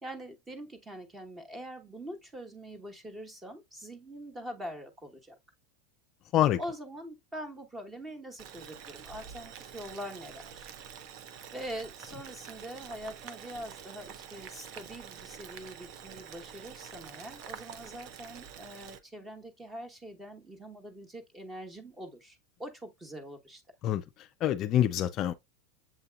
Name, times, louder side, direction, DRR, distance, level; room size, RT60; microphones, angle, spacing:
voice 1, 0.0-5.3 6.6-10.7 11.5-23.6, equal, 15° right, 1.1 m, -43 dB
Boiling, 8.4-19.0, right 8 dB, 55° right, 0.6 m, -47 dB
voice 2, 24.4-25.3, left 12 dB, 40° left, 0.4 m, -25 dB
7.5 x 2.8 x 2.3 m
supercardioid pair, 125°, 0 cm